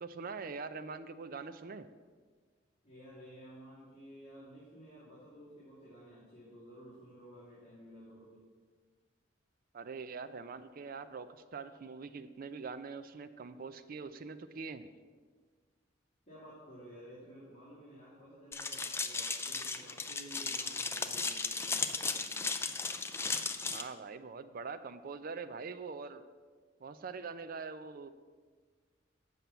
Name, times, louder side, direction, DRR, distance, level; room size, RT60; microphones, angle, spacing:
voice 1, 0.0-1.9 9.7-14.9 23.7-26.2 26.8-28.1, right 4 dB, 50° right, 11 dB, 0.4 m, -43 dB
voice 2, 2.8-8.4 16.3-22.4, equal, 30° left, -10 dB, 2.7 m, -53 dB
sound 1, 18.5-23.8, left 4 dB, 15° left, 0.4 m, -35 dB
7.6 x 5.7 x 6.8 m, 1.5 s
head